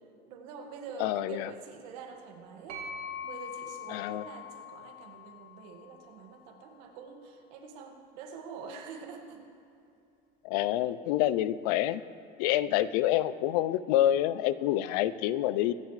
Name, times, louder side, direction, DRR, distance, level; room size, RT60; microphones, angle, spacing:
voice 1, 0.3-2.9 3.2-9.5, right 5 dB, 85° right, 3 dB, 1.9 m, -45 dB
voice 2, 1.0-1.5 3.9-4.2 10.4-12.0 12.4-15.7, left 13 dB, 80° left, 16 dB, 0.5 m, -27 dB
sound 1, 2.7-6.5, left 5 dB, 50° right, 2.9 m, -43 dB
25.0 x 10.5 x 3.3 m, 2.6 s
cardioid pair, 175°, 20 cm